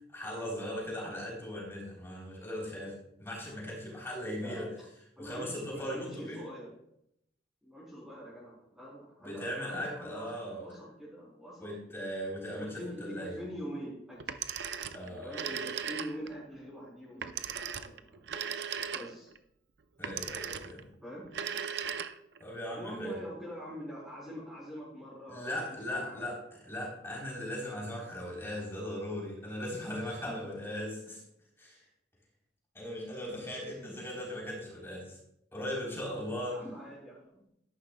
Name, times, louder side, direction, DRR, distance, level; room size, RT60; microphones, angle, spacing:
voice 1, 0.1-4.7 5.2-6.5 9.2-10.6 11.6-13.4 14.9-15.5 20.0-20.9 22.4-23.2 25.3-31.2 31.6-31.8 32.7-35.2 35.5-36.6, equal, 15° left, -4 dB, 3.8 m, -38 dB
voice 2, 5.2-6.7 7.6-10.3 10.6-12.1 12.6-14.3 15.0-17.4 17.8-18.2 18.9-19.3 21.0-21.3 22.7-25.6 25.9-26.2 30.3-30.4 33.8-34.0 36.2-37.4, equal, 5° right, -11 dB, 3.7 m, -44 dB
Telephone, 14.2-16.4 17.2-19.4 20.0-20.8 21.3-22.4, right 7 dB, 65° right, 0.6 m, -37 dB
13.0 x 11.0 x 2.3 m, 0.77 s
head